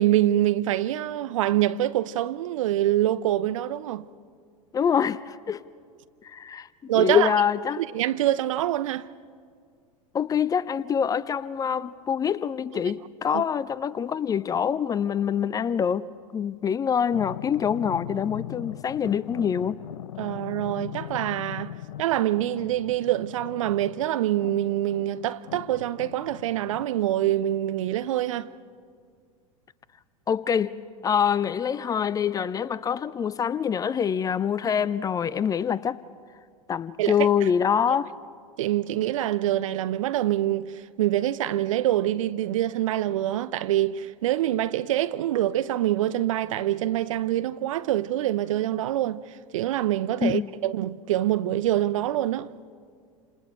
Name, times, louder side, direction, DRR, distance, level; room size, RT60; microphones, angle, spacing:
voice 1, 0.0-4.1 6.9-7.3 7.8-9.1 13.3-13.4 20.2-21.7 22.0-28.5 37.0-37.1 38.6-49.2 49.5-52.5, right 13 dB, 60° right, 0.7 m, -25 dB
voice 2, 4.7-5.6 6.2-7.8 10.1-16.0 16.3-19.8 30.3-36.0 36.7-38.1 50.2-50.5, left 8 dB, 20° left, 0.5 m, -25 dB
sound 1, 17.1-26.9, left 12 dB, 65° left, 0.5 m, -40 dB
29.0 x 27.0 x 4.4 m
figure-of-eight pair, 85°, 19 cm